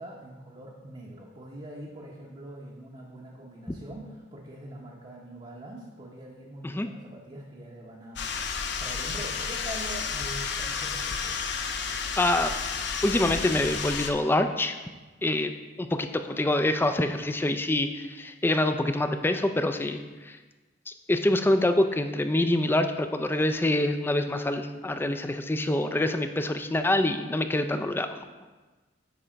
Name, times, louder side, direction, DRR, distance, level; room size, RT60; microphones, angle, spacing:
voice 1, 0.0-8.3 8.8-11.4, right 1 dB, 30° right, -3 dB, 0.7 m, -43 dB
sound 1, 8.2-14.1, left 5 dB, 65° left, 0.6 m, -31 dB
voice 2, 12.2-12.5 13.0-14.8 15.2-15.5 15.8-20.4 20.9-28.2, left 1 dB, 10° left, 8 dB, 0.3 m, -26 dB
8.6 x 3.3 x 5.0 m, 1.3 s
head